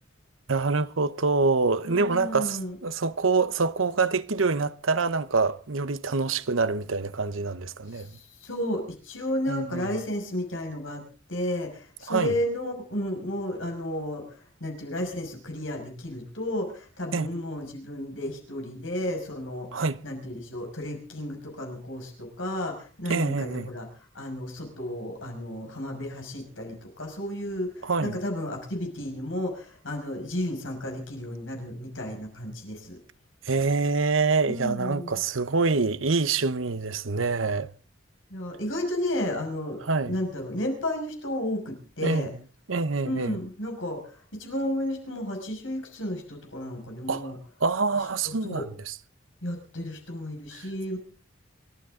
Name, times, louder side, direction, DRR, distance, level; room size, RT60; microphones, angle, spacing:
voice 1, 0.5-8.2 9.5-10.0 12.1-12.3 17.1-17.3 19.7-20.0 23.1-23.7 27.8-28.2 33.4-37.7 39.8-40.2 42.0-42.3 42.7-43.4 47.1-47.3 47.6-48.6 50.5-50.7, right 4 dB, 90° right, 1.0 m, -26 dB
voice 2, 1.8-2.8 7.9-11.0 11.3-23.9 24.1-33.0 34.5-35.2 38.3-39.8 40.1-42.3 43.0-44.0 44.3-47.4 48.2-48.6 49.4-51.0, left 1 dB, 80° left, 6.1 m, -32 dB
29.0 x 12.5 x 3.8 m
head